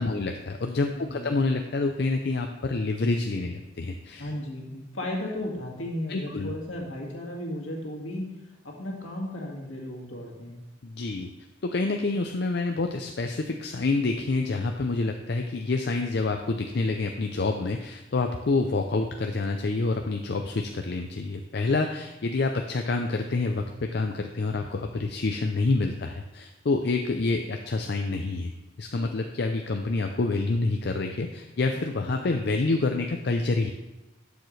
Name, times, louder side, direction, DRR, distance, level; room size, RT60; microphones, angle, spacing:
voice 1, 0.0-4.3 6.1-6.5 10.8-11.3 11.6-28.5 28.8-33.7, left 3 dB, 55° left, 4 dB, 0.5 m, -27 dB
voice 2, 0.9-1.4 4.1-8.2 8.6-10.6 31.7-32.2, left 1 dB, 75° left, -1 dB, 2.0 m, -35 dB
11.5 x 7.1 x 3.2 m, 1.0 s
head